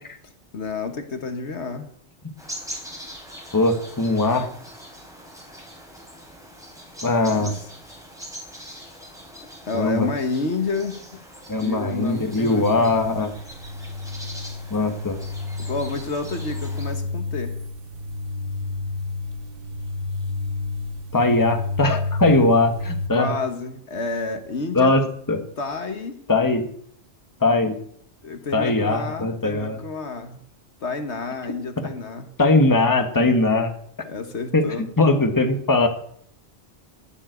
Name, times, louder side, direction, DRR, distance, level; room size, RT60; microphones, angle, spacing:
voice 1, 0.5-1.9 7.3-7.7 9.6-11.0 11.6-12.9 15.6-17.6 23.1-25.0 25.6-26.2 28.2-30.4 30.8-32.3 34.0-34.9, left 4 dB, 70° left, 7 dB, 1.6 m, -29 dB
sound 1, 2.4-17.0, equal, 5° right, 4.1 m, -42 dB
voice 2, 3.5-4.5 7.0-7.6 9.7-10.1 11.5-13.3 14.7-15.2 21.1-23.3 24.7-25.0 25.3-25.4 26.3-26.7 27.4-27.7 28.5-29.8 31.4-31.5 32.4-33.7 34.5-35.9, left 2 dB, 15° left, 5 dB, 1.3 m, -20 dB
sound 2, 12.1-23.1, left 3 dB, 50° right, 1.3 m, -31 dB
13.5 x 7.3 x 8.1 m, 0.65 s
omnidirectional pair, 1.2 m